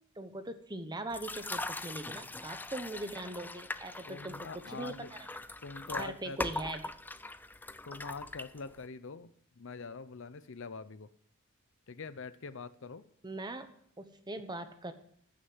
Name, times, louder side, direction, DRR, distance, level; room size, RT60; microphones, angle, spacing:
voice 1, 0.2-5.3 6.0-6.8 13.2-13.7 14.0-14.9, right 2 dB, 20° right, 9 dB, 1.1 m, -41 dB
sound 1, 1.1-8.9, left 2 dB, 10° left, 0.4 m, -41 dB
voice 2, 4.1-5.1 5.6-6.4 7.8-11.1 11.9-13.0, left 4 dB, 65° left, 14 dB, 0.7 m, -44 dB
15.0 x 6.6 x 7.9 m, 0.66 s
head